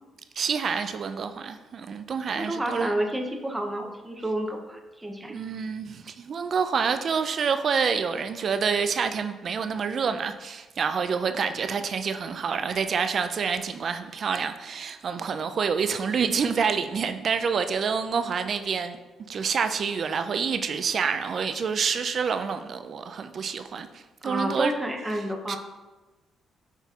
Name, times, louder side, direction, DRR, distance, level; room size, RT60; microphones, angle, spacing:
voice 1, 0.4-2.9 5.3-19.0 19.3-24.7 25.2-25.6, right 6 dB, 50° right, 9 dB, 0.3 m, -27 dB
voice 2, 2.3-5.5 24.2-25.6, right 1 dB, 10° right, 3 dB, 0.6 m, -30 dB
5.4 x 4.1 x 2.4 m, 1.2 s
cardioid pair, 90°, 0 cm